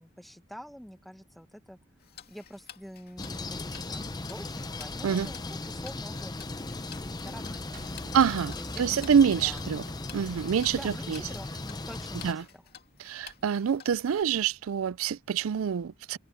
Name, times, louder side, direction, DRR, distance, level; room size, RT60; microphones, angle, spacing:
voice 1, 0.0-1.8 2.3-7.8 8.6-9.6 10.7-12.6, equal, ahead, 1.3 m, -47 dB
Tick-tock, 2.0-14.2, left 8 dB, 50° left, 2.5 m, -52 dB
sound 1, 3.2-12.3, left 2 dB, 20° left, 0.8 m, -37 dB
sound 2, 7.7-12.1, equal, 40° right, 4.1 m, -49 dB
voice 2, 8.1-9.8 10.1-11.2 12.2-12.4 13.0-16.2, right 7 dB, 90° right, 0.4 m, -26 dB
head